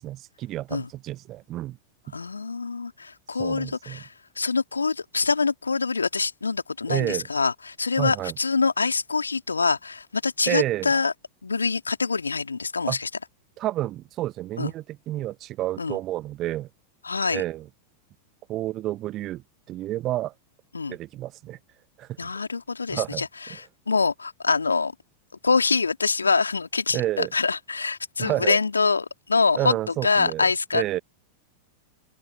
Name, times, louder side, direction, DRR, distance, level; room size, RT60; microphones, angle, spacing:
voice 1, 0.0-1.8 2.1-2.2 3.4-4.0 6.9-7.3 8.0-8.3 10.5-10.9 12.9-13.0 13.6-16.7 17.3-17.7 18.5-20.3 20.9-21.6 22.0-22.3 22.9-23.3 26.9-27.3 28.2-28.6 29.6-31.0, right 15 dB, 35° right, 1.2 m, -30 dB
voice 2, 2.1-4.1 4.4-11.1 11.4-13.1 14.6-14.7 15.8-16.0 17.0-17.4 20.7-21.0 22.2-23.3 23.5-24.9 25.4-29.7 30.0-31.0, left 4 dB, 75° left, 2.8 m, -25 dB
open air
figure-of-eight pair, 90°, 0 cm